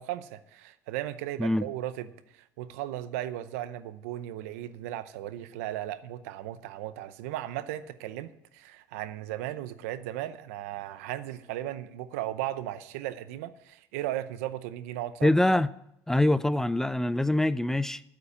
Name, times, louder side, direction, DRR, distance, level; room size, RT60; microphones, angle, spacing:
voice 1, 0.0-2.1 2.3-15.3, right 13 dB, 90° right, 14 dB, 0.7 m, -36 dB
voice 2, 15.2-15.7 16.1-18.0, left 1 dB, 5° left, 16 dB, 0.4 m, -24 dB
8.3 x 8.2 x 8.6 m, 0.78 s
supercardioid pair, 90°, 8 cm